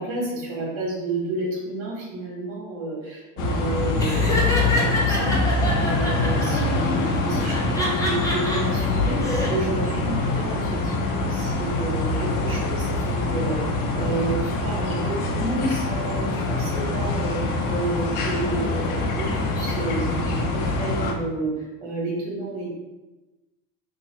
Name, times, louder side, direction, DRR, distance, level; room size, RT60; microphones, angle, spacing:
voice 1, 0.0-5.4 5.7-21.5 21.8-22.7, right 2 dB, 70° right, -3 dB, 1.5 m, -30 dB
sound 1, 3.4-21.1, left 2 dB, 50° left, 0.6 m, -24 dB
Laughter, 4.0-6.6 7.4-8.6 9.1-9.5, left 1 dB, 10° left, 0.6 m, -26 dB
2.7 x 2.5 x 4.1 m, 1.1 s
cardioid pair, 135°, 43 cm